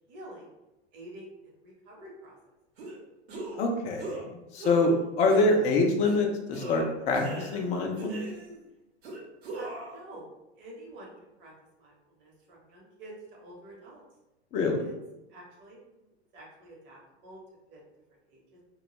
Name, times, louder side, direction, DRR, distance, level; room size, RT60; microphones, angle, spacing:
voice 1, 0.1-0.5 0.9-1.3 1.6-2.4 9.5-10.3 10.6-11.5 11.8-11.9 12.2-14.0 14.8-14.9 15.3-16.1 16.3-17.4 17.7-17.8 18.3-18.4, right 1 dB, 35° right, -3 dB, 0.9 m, -48 dB
sound 1, 2.8-3.0 3.3-3.7 4.0-4.2 4.6-5.0 5.3-5.6 6.0-6.2 6.5-7.7 8.0-8.6 9.0-10.0, right 2 dB, 65° right, 0.9 m, -39 dB
voice 2, 3.6-4.2 4.5-8.2 14.5-14.8, left 2 dB, 20° left, 2 dB, 0.4 m, -25 dB
2.3 x 2.2 x 2.9 m, 0.98 s
figure-of-eight pair, 90°, 33 cm